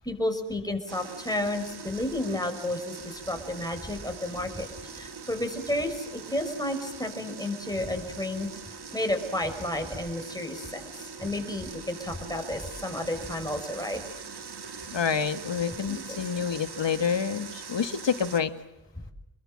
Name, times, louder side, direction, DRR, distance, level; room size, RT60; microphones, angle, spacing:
voice 1, 0.0-8.5 8.9-14.0 15.9-16.2, left 1 dB, 10° left, 4 dB, 5.8 m, -32 dB
sound 1, 0.9-18.4, right 5 dB, 55° right, 1.9 m, -42 dB
voice 2, 14.9-18.5, left 7 dB, 70° left, 10 dB, 1.9 m, -28 dB
28.0 x 22.0 x 7.7 m, 0.93 s
wide cardioid pair, 85°, 46 cm